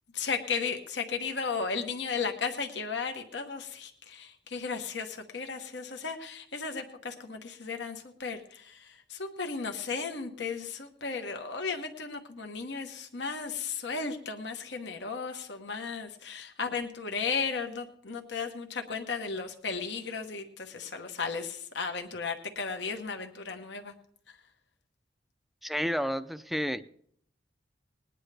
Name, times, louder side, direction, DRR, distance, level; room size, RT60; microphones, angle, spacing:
voice 1, 0.1-23.9 24.3-24.4, left 5 dB, 70° left, 4 dB, 1.2 m, -35 dB
voice 2, 25.6-26.8, equal, ahead, 11 dB, 0.5 m, -30 dB
20.5 x 9.9 x 3.4 m, 0.63 s
head